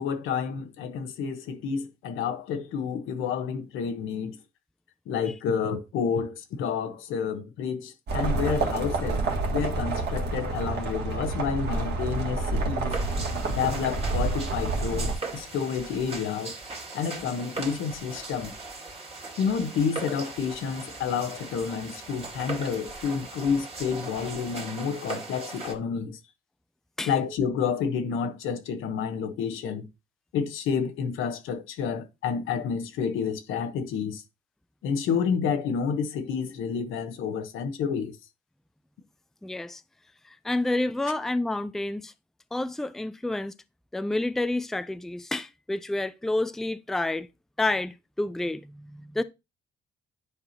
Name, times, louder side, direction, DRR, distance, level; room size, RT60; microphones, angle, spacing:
voice 1, 0.0-4.4 5.1-9.2 9.5-13.0 13.5-16.5 16.9-18.5 19.4-26.2 27.1-29.8 30.3-34.2 34.8-38.2, left 6 dB, 85° left, 1.2 m, -29 dB
sound 1, 8.1-15.1, right 3 dB, 55° right, 1.8 m, -28 dB
sound 2, 12.9-25.7, right 3 dB, 30° right, 2.2 m, -39 dB
voice 2, 39.4-39.8 40.4-42.1 42.5-43.5 43.9-47.3 47.6-49.2, left 2 dB, ahead, 0.4 m, -29 dB
9.9 x 4.8 x 2.9 m
cardioid pair, 90°, 20 cm